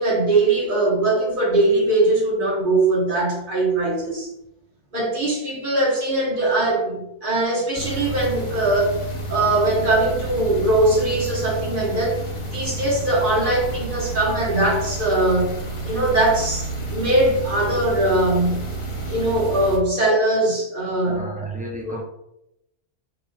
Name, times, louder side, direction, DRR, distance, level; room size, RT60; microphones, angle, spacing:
voice 1, 0.0-4.3 4.9-9.0 9.3-12.2 12.5-15.6 15.8-18.7 19.1-21.3, right 2 dB, 45° right, 1.3 m, -21 dB
sound 1, 7.7-19.8, right 2 dB, 30° left, 0.8 m, -30 dB
voice 2, 21.0-22.0, right 2 dB, 15° right, 0.3 m, -32 dB
4.4 x 3.7 x 2.2 m
omnidirectional pair, 1.2 m